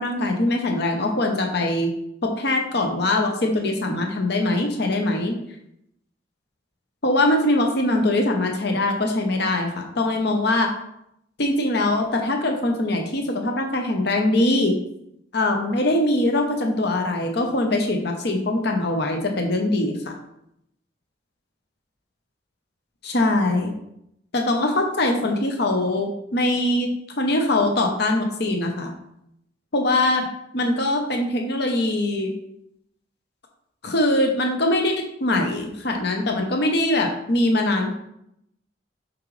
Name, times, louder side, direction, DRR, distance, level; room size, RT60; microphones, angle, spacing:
voice 1, 0.0-1.9 2.2-5.4 7.0-10.7 11.4-14.7 15.3-20.1 23.0-23.7 24.3-26.9 27.2-28.9 29.7-30.3 30.5-32.3 33.8-37.9, left 1 dB, 60° left, 3 dB, 0.9 m, -22 dB
7.4 x 6.1 x 3.3 m, 0.79 s
head